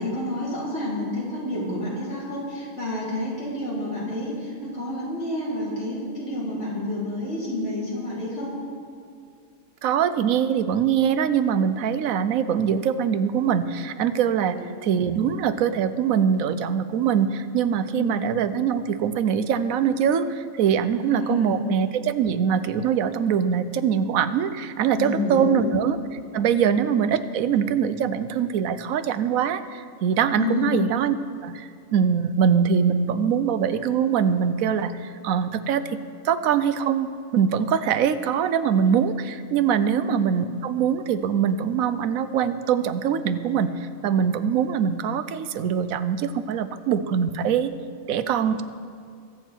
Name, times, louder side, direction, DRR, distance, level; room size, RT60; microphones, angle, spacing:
voice 1, 0.0-8.5 14.4-14.7 17.9-18.2 20.9-21.6 25.0-25.7 26.5-26.7 30.4-30.8 39.9-40.2, left 1 dB, 60° left, -7 dB, 4.1 m, -29 dB
voice 2, 9.8-26.0 26.3-31.1 31.4-47.7 48.1-48.6, right 7 dB, 90° right, 12 dB, 1.1 m, -23 dB
22.5 x 8.0 x 4.5 m, 2.3 s
omnidirectional pair, 1.4 m